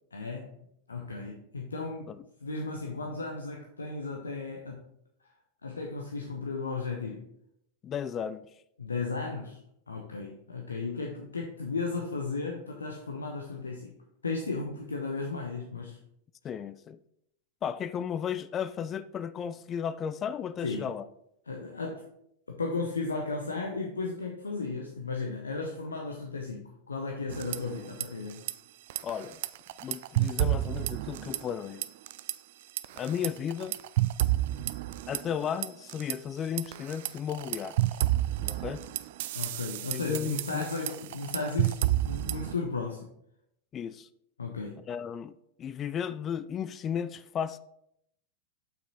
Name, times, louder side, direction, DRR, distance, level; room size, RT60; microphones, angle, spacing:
voice 1, 0.1-0.6 0.9-2.1 2.4-4.8 5.6-7.2 8.8-9.6 9.9-13.9 14.2-16.0 20.6-20.9 21.5-22.1 22.5-28.4 39.3-41.8 42.0-43.1 44.4-44.8, left 3 dB, 75° left, 0.8 m, -35 dB
voice 2, 7.8-8.5 16.4-17.0 17.6-21.0 29.0-29.4 29.8-31.8 33.0-33.8 35.1-37.8 38.4-38.8 39.9-40.7 43.7-44.1 44.9-45.3 45.6-47.6, left 8 dB, 25° left, 0.3 m, -34 dB
sound 1, 27.3-28.1 28.3-28.5 28.9-31.6 31.8-32.3 32.8-36.1 36.6-42.5, right 15 dB, 55° right, 0.3 m, -30 dB
7.0 x 6.0 x 4.1 m
figure-of-eight pair, 90°, 0 cm